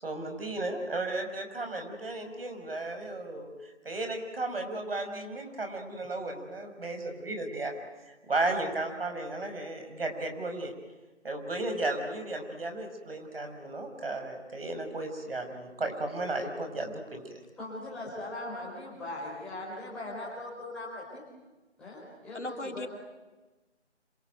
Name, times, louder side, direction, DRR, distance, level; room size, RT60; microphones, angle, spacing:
voice 1, 0.0-3.5 3.8-7.7 8.0-10.7 11.2-17.2, right 2 dB, 55° right, 5 dB, 5.6 m, -34 dB
voice 2, 17.6-21.2 21.8-22.9, left 1 dB, 5° left, -6 dB, 4.2 m, -40 dB
voice 3, 22.3-22.9, left 2 dB, 80° left, 5 dB, 3.3 m, -37 dB
27.0 x 23.5 x 9.3 m, 1.2 s
figure-of-eight pair, 165°, 35 cm